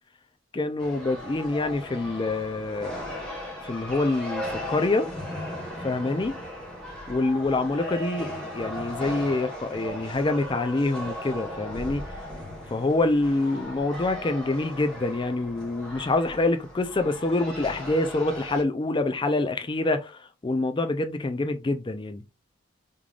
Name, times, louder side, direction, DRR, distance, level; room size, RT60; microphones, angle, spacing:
voice 1, 0.5-2.9 3.6-5.1 5.8-6.3 7.1-8.3 8.5-12.0 12.7-22.2, left 2 dB, 25° left, 0.4 m, -26 dB
sound 1, 0.8-18.6, left 1 dB, 5° left, 1.2 m, -37 dB
3.6 x 3.3 x 2.4 m
head